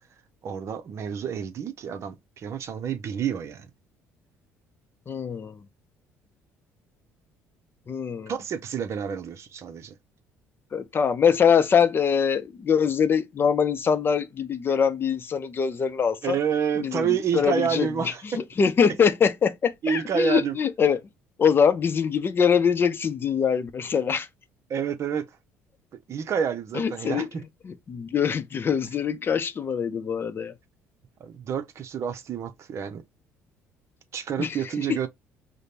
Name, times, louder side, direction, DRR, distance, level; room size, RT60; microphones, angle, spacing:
voice 1, 0.4-3.7 8.3-9.9 16.2-18.4 18.8-18.9 19.8-20.5 24.7-25.3 26.1-27.3 31.2-33.0 34.1-35.1, right 7 dB, 50° right, 0.7 m, -28 dB
voice 2, 5.1-5.6 7.9-8.3 10.7-16.4 16.8-21.0 21.4-24.3 26.7-30.5 34.4-34.6, left 7 dB, 40° left, 0.6 m, -23 dB
5.0 x 2.1 x 2.7 m
supercardioid pair, 75°, 6 cm